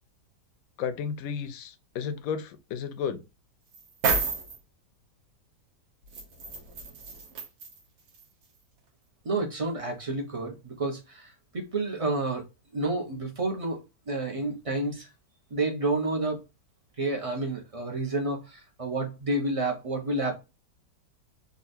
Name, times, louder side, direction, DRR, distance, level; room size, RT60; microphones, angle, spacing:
voice 1, 0.8-3.2, left 7 dB, 70° left, 0.9 m, -33 dB
sound 1, 3.7-4.6 6.1-7.8 8.2-8.3, right 4 dB, 80° right, 1.6 m, -30 dB
voice 2, 9.2-12.4 12.7-15.1 15.5-16.4 17.0-20.3, right 2 dB, 35° right, 0.5 m, -30 dB
3.9 x 2.4 x 2.6 m
omnidirectional pair, 1.8 m